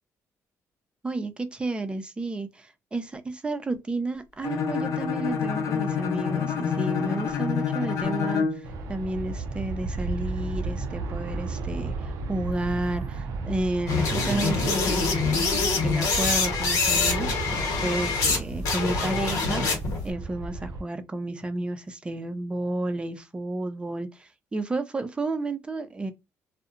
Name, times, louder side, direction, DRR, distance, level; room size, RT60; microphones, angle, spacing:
voice 1, 1.0-17.5 17.8-19.6 20.0-26.1, right 2 dB, 20° right, 0.4 m, -31 dB
Bowed string instrument, 4.4-8.7, left 7 dB, 65° left, 0.6 m, -27 dB
Aircraft, 8.6-20.8, right 3 dB, 75° right, 0.5 m, -34 dB
sound 1, 13.9-18.4 18.6-20.0, left 4 dB, 85° left, 0.9 m, -25 dB
2.7 x 2.1 x 2.4 m
cardioid pair, 115°, 6 cm